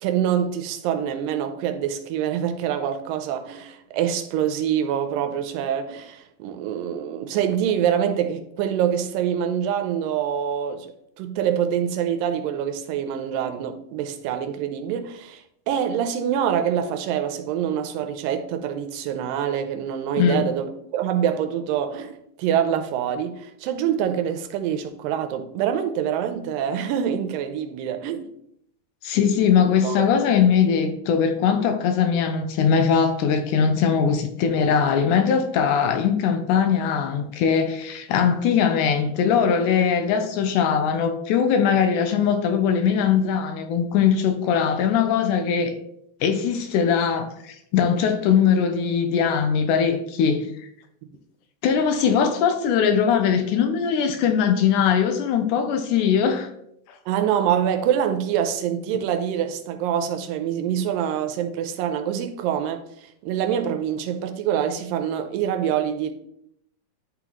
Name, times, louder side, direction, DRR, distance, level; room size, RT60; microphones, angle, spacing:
voice 1, 0.0-10.9 11.2-28.3 29.6-30.0 57.1-66.1, right 9 dB, 90° right, 2.3 m, -25 dB
voice 2, 20.2-20.5 29.0-45.7 46.2-50.4 51.6-56.5, left 7 dB, 75° left, 2.0 m, -21 dB
10.5 x 3.9 x 3.0 m
omnidirectional pair, 3.9 m